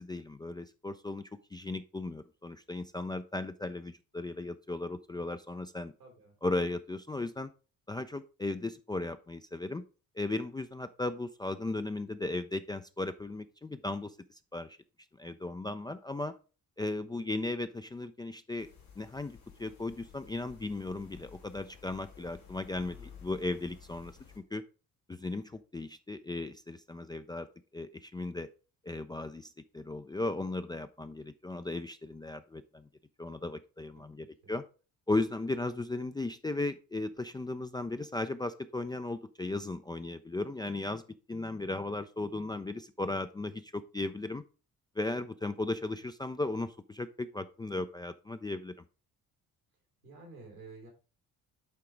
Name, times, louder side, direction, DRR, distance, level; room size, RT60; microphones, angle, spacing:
voice 1, 0.0-5.9 6.4-7.5 7.9-9.8 10.2-14.8 15.2-16.4 16.8-18.7 19.0-24.6 25.1-27.5 27.7-28.5 28.8-32.9 33.2-34.6 35.1-41.0 41.3-44.4 45.0-48.7, left 2 dB, 10° left, 9 dB, 0.3 m, -36 dB
voice 2, 6.0-6.3 17.1-17.4 22.9-23.1 33.9-34.5 50.0-50.9, right 3 dB, 90° right, -1 dB, 3.0 m, -52 dB
sound 1, 18.6-24.4, left 7 dB, 85° left, 2.9 m, -54 dB
8.7 x 3.8 x 4.5 m, 0.35 s
figure-of-eight pair, 50°, 44 cm